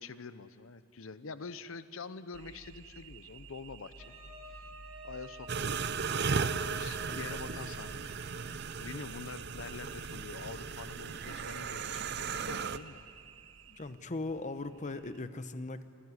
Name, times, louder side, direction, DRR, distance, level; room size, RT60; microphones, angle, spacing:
voice 1, 0.0-4.1 4.5-4.6 5.0-5.7 6.6-8.2 8.8-13.0, left 4 dB, 90° left, 13 dB, 0.8 m, -46 dB
sound 1, 2.3-15.2, right 5 dB, 85° right, 1.0 m, -54 dB
Wind instrument woodwind instrument, 4.0-8.3, left 1 dB, ahead, 7.9 m, -52 dB
sound 2, 5.5-12.8, right 5 dB, 55° right, 0.7 m, -36 dB
voice 2, 13.7-15.8, left 2 dB, 40° left, 11 dB, 0.8 m, -38 dB
25.0 x 15.5 x 9.7 m, 2.5 s
head